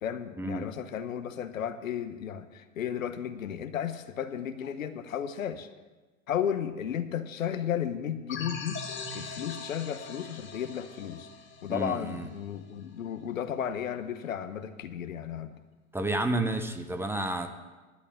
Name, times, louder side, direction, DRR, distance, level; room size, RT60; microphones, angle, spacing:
voice 1, 0.0-5.7 6.3-8.8 9.1-11.3 11.6-15.6, left 9 dB, 75° left, 11 dB, 0.9 m, -34 dB
sound 1, 8.3-12.8, left 3 dB, 30° left, 2.2 m, -41 dB
voice 2, 11.7-12.3 15.9-17.5, right 2 dB, 5° right, 7 dB, 0.8 m, -30 dB
11.5 x 8.3 x 7.0 m, 1.2 s
figure-of-eight pair, 90°, 40 cm